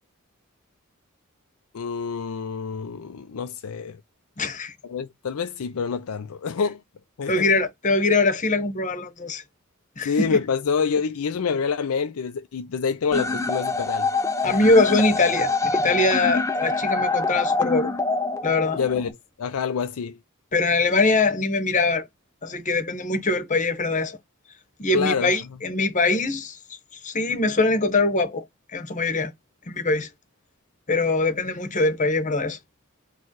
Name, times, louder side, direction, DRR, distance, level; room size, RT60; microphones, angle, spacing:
voice 1, 1.7-4.0 4.8-6.8 7.2-7.6 10.0-14.1 18.8-20.2 24.9-25.4, left 6 dB, 80° left, 0.5 m, -27 dB
voice 2, 4.4-4.7 7.3-9.4 10.0-10.4 14.4-17.9 18.4-18.8 20.5-22.1 22.4-24.2 24.8-26.6 27.0-28.4 28.7-29.3 29.7-30.1 30.9-32.6, left 3 dB, 35° left, 1.0 m, -22 dB
sound 1, 13.1-19.1, left 3 dB, 15° left, 0.4 m, -25 dB
4.5 x 2.3 x 4.6 m
head